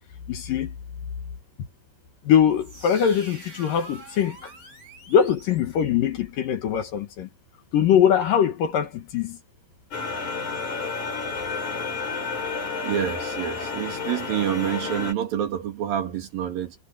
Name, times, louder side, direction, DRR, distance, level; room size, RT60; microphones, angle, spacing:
voice 1, 0.3-0.7 2.3-4.5 5.1-7.3 7.7-9.4, left 8 dB, 60° left, 2.6 m, -22 dB
sound 1, 2.5-6.3, right 3 dB, 20° right, 5.8 m, -45 dB
sound 2, 9.9-15.1, left 4 dB, 40° left, 8.5 m, -30 dB
voice 2, 12.8-16.7, right 10 dB, 60° right, 3.4 m, -27 dB
omnidirectional pair, 5.2 m